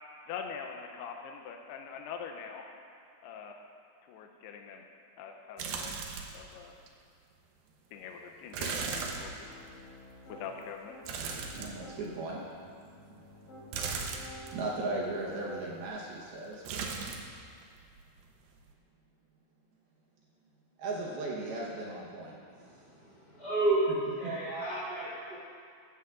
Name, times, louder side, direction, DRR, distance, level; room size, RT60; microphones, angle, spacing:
voice 1, 0.3-2.8 3.2-3.6 4.0-4.9 5.2-6.0 6.3-6.8 7.9-9.5 10.3-11.0, left 6 dB, 85° left, 3 dB, 2.3 m, -43 dB
sound 1, 5.6-6.5 6.9-7.0 8.5-9.8 11.0-12.2 13.7-14.5 16.6-17.4 17.6-18.2 18.6-18.7, right 5 dB, 90° right, 2.0 m, -37 dB
Piano, 9.4-10.5 10.9-12.0 12.6-15.9, equal, 45° left, 4.6 m, -51 dB
voice 2, 11.5-12.4 14.0-17.2 20.8-22.3, right 2 dB, 70° right, -4 dB, 2.6 m, -37 dB
voice 3, 23.0-23.8 24.2-25.4, right 2 dB, 20° right, -9 dB, 2.0 m, -31 dB
15.0 x 14.0 x 2.5 m, 2.2 s
omnidirectional pair, 5.4 m